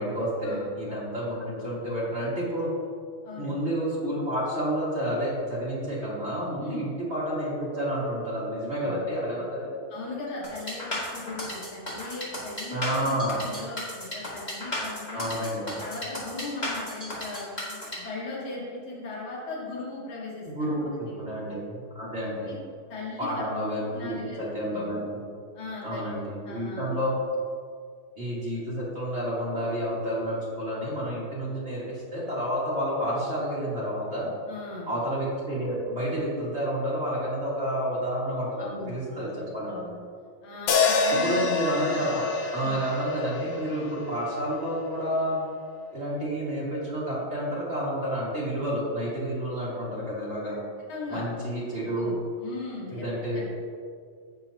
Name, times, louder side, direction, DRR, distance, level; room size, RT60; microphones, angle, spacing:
voice 1, 0.0-2.7 3.4-9.6 12.7-13.4 15.1-15.7 20.4-22.5 23.2-25.2 25.8-27.1 28.1-34.3 34.9-39.8 41.2-42.2 42.5-45.4 45.9-50.6 51.1-52.1 52.9-53.5, equal, 40° right, -9 dB, 1.0 m, -30 dB
voice 2, 3.2-3.6 6.6-6.9 8.8-9.1 9.9-15.2 15.8-21.6 22.5-22.6 22.9-23.4 23.9-24.4 24.7-24.9 25.5-27.0 34.5-34.9 38.6-40.0 40.4-41.4 42.6-42.8 50.9-51.3 51.8-53.1 53.3-53.5, left 3 dB, 40° left, -6 dB, 2.6 m, -38 dB
sound 1, 10.4-18.0, left 1 dB, 20° left, 1.2 m, -34 dB
sound 2, 40.7-45.0, left 4 dB, 80° left, 2.8 m, -27 dB
16.5 x 5.7 x 2.8 m, 2.1 s
omnidirectional pair, 4.5 m